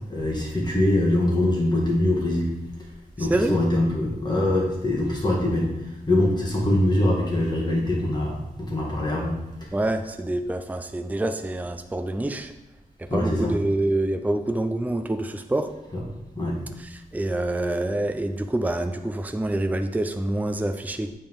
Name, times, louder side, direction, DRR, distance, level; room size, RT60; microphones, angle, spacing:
voice 1, 0.1-2.5 3.2-9.8 13.1-13.6 15.9-16.0 16.4-16.6, left 1 dB, 25° left, -4 dB, 1.9 m, -23 dB
voice 2, 9.7-12.5 13.1-15.7 17.1-21.1, right 1 dB, 10° right, 7 dB, 0.5 m, -26 dB
8.9 x 3.7 x 5.3 m, 0.96 s
wide cardioid pair, 80°, 16 cm